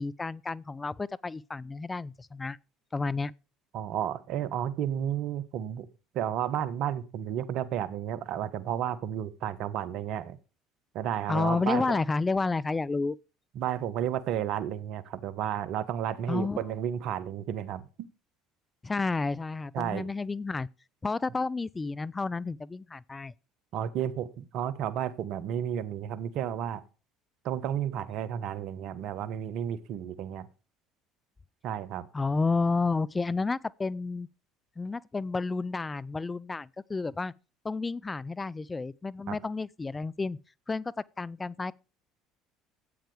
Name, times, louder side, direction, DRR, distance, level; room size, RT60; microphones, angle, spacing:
voice 1, 0.0-2.6 2.9-3.3 11.3-13.2 16.3-16.6 18.8-20.7 21.0-23.3 32.1-34.3 34.8-37.3 37.6-40.4 40.7-41.7, left 3 dB, 20° left, 0.5 m, -31 dB
voice 2, 3.7-5.9 6.1-10.4 10.9-12.0 13.5-18.1 19.7-20.1 23.7-26.8 27.4-30.5 31.6-32.1 39.3-39.4, right 10 dB, 60° right, 1.2 m, -32 dB
13.5 x 9.0 x 3.4 m
hypercardioid pair, 65°, 0 cm